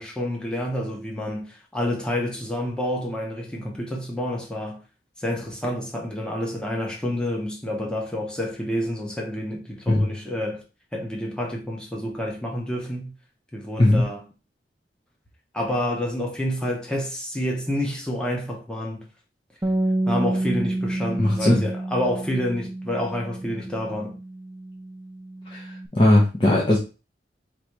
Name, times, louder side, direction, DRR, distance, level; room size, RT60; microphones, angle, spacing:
voice 1, 0.0-4.8 5.2-10.6 10.9-13.1 13.5-14.2 15.5-19.0 20.1-24.2, left 1 dB, 5° left, 1.0 m, -28 dB
Bass guitar, 19.6-25.9, right 1 dB, 15° right, 0.4 m, -29 dB
voice 2, 21.2-21.7 25.5-26.8, left 1 dB, 30° left, 0.9 m, -19 dB
3.9 x 2.9 x 4.6 m
head